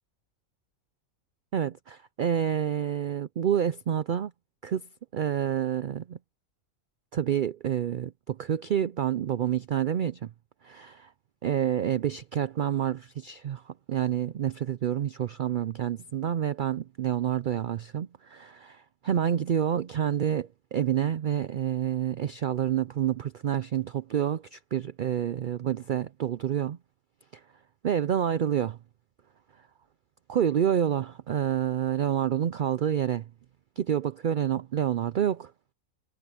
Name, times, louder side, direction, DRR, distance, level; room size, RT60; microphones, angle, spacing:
voice 1, 1.5-4.3 4.6-4.9 5.1-6.2 7.1-10.3 10.6-11.1 11.4-26.8 27.3-27.4 27.8-28.8 30.3-33.3 33.8-35.5, right 9 dB, 75° right, 0.4 m, -28 dB
omnidirectional pair, 1.4 m